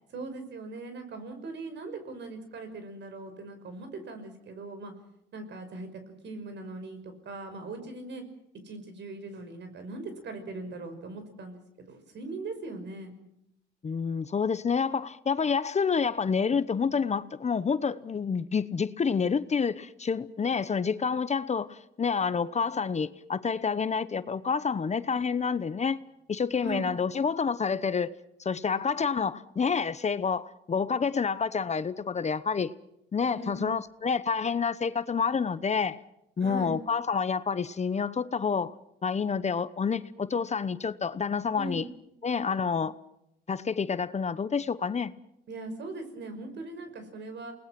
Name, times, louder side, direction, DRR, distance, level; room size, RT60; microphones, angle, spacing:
voice 1, 0.1-4.9 5.3-8.2 8.6-13.1 26.6-26.9 33.3-33.7 36.4-36.8 41.5-41.9 45.5-47.5, right 3 dB, 65° right, 5.7 m, -40 dB
voice 2, 13.8-26.0 26.3-28.1 28.4-32.7 33.1-36.0 36.4-38.7 39.0-41.8 42.2-42.9 43.5-45.1, left 5 dB, 35° left, 1.0 m, -28 dB
29.0 x 20.0 x 6.1 m
cardioid pair, 90°, 20 cm